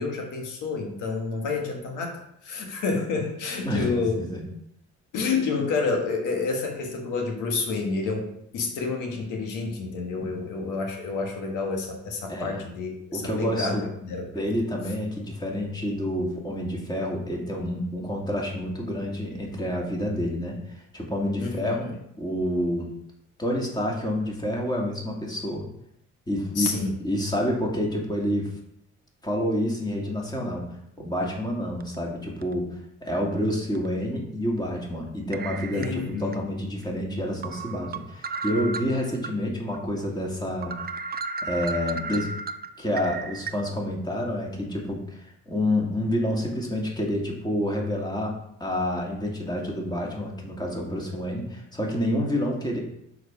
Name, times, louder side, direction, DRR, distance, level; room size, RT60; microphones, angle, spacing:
voice 1, 0.0-4.2 5.1-14.6 21.4-21.9 26.5-26.9 35.7-36.4, left 4 dB, 85° left, 2 dB, 1.5 m, -29 dB
voice 2, 3.6-4.4 10.2-10.4 12.3-12.6 13.1-13.8 14.3-21.9 22.2-22.9 23.4-25.7 26.3-26.8 27.0-28.5 29.2-30.6 31.0-32.7 33.0-40.7 41.4-42.3 42.8-52.8, equal, 15° left, -2 dB, 2.3 m, -28 dB
sound 1, 31.8-32.0 32.4-32.5 33.7-33.9 35.3-36.4 36.8-36.9 37.4-39.3 39.7-39.8 40.2-40.3 40.6-43.5, right 4 dB, 30° right, 0.5 m, -34 dB
6.5 x 4.7 x 5.6 m, 0.76 s
cardioid pair, 90°, 30 cm